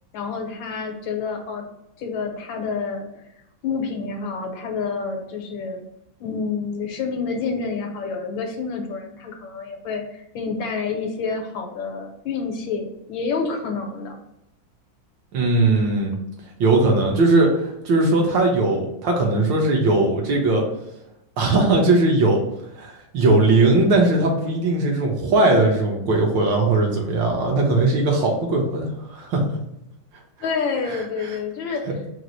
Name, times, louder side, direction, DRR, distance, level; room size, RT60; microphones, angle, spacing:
voice 1, 0.1-1.7 2.0-3.1 3.6-5.8 6.2-14.2 30.4-31.9, left 5 dB, 75° left, 3 dB, 1.4 m, -28 dB
voice 2, 15.3-16.1 16.6-20.6 21.4-22.4 22.8-29.4 31.2-31.3, right 2 dB, 70° right, 0 dB, 1.6 m, -19 dB
4.8 x 2.0 x 3.9 m, 0.84 s
omnidirectional pair, 2.2 m